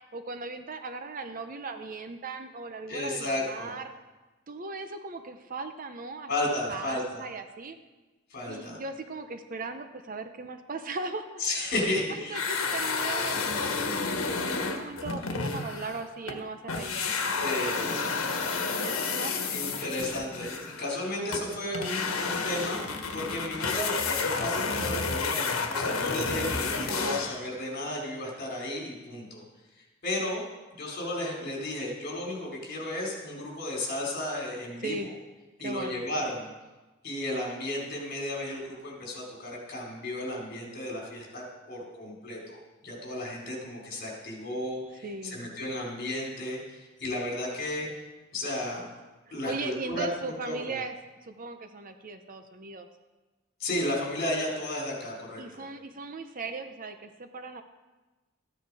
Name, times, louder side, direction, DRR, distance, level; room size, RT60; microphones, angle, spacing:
voice 1, 0.1-3.9 4.5-6.3 6.7-7.8 8.4-11.4 11.7-13.7 14.0-17.9 18.7-19.4 26.9-27.2 34.8-35.1 35.6-36.0 45.0-45.5 49.3-50.9 51.2-52.9 55.4-57.6, right 3 dB, 40° right, 8 dB, 0.8 m, -38 dB
voice 2, 2.9-3.7 6.3-7.2 8.3-8.8 11.4-12.4 17.4-18.0 19.5-29.4 30.0-30.4 30.7-35.0 35.6-36.5 37.0-47.9 48.3-48.9 49.3-50.8 53.6-55.6, left 1 dB, 50° left, -2 dB, 4.0 m, -33 dB
sound 1, 12.3-16.4 16.7-27.5, left 4 dB, 90° left, 1.4 m, -31 dB
14.0 x 10.0 x 4.8 m, 1.2 s
head